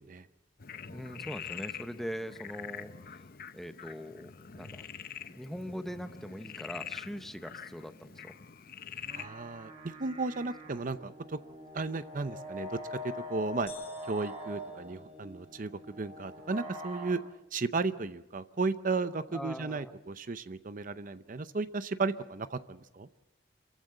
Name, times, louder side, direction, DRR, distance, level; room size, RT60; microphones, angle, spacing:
Frog, 0.6-9.3, left 8 dB, 55° left, 0.7 m, -45 dB
voice 1, 0.9-3.1 3.5-4.9 5.3-8.4 19.3-19.9, equal, ahead, 9 dB, 0.8 m, -41 dB
sound 1, 8.9-17.1, equal, 35° right, 4.4 m, -44 dB
voice 2, 9.1-11.4 11.7-13.7 14.0-15.7 16.0-17.2 17.5-23.1, right 3 dB, 50° right, 12 dB, 0.7 m, -34 dB
sound 2, 13.7-15.6, left 8 dB, 35° left, 3.5 m, -54 dB
28.0 x 14.5 x 7.4 m, 1.0 s
head